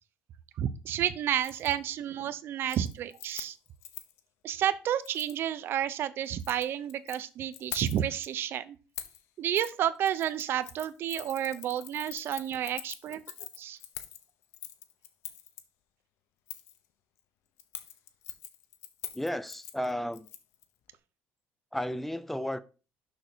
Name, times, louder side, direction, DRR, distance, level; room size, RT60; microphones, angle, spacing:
voice 1, 0.6-3.6 4.4-8.8 9.4-13.2 13.6-13.8, right 10 dB, 55° right, 0.7 m, -31 dB
Keys jangling, 1.4-1.7 2.1-2.4 2.6-4.2 5.0-5.4 6.2-7.2 7.5-8.3 9.0-9.2 9.6-9.7 10.0-15.6 16.5-16.8 17.6-20.6 20.9-21.0, left 12 dB, 75° left, 0.9 m, -44 dB
voice 2, 19.1-20.3 21.7-22.6, left 1 dB, 5° left, 0.5 m, -33 dB
6.5 x 6.3 x 4.4 m
cardioid pair, 130°, 5 cm